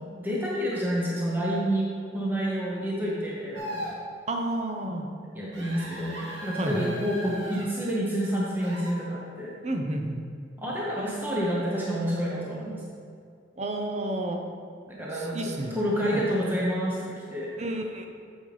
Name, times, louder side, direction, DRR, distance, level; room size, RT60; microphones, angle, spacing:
voice 1, 0.0-1.9 2.1-3.9 5.3-9.5 10.6-12.8 14.9-17.5, equal, 10° right, -5 dB, 1.0 m, -29 dB
sound 1, 3.5-4.0 5.5-7.7 8.6-8.9, equal, 70° right, 1.4 m, -38 dB
voice 2, 4.3-5.1 6.6-6.9 9.6-10.2 13.6-14.4 15.2-15.8 16.1-16.3 17.6-18.1, right 1 dB, 35° right, 3 dB, 0.8 m, -30 dB
9.0 x 7.3 x 3.3 m, 2.3 s
head